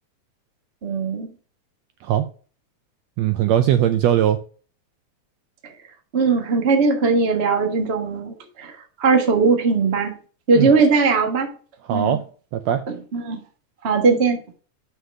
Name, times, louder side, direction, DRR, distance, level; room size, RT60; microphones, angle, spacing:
voice 1, 0.8-1.3 6.1-8.7 9.0-10.1 10.5-11.5 11.9-12.2 13.1-13.4 13.8-14.4, right 4 dB, 50° right, 0.7 m, -19 dB
voice 2, 3.2-4.4 10.6-10.7 11.9-12.2 12.5-12.8, right 11 dB, 80° right, 1.5 m, -19 dB
5.8 x 5.7 x 6.2 m
omnidirectional pair, 3.5 m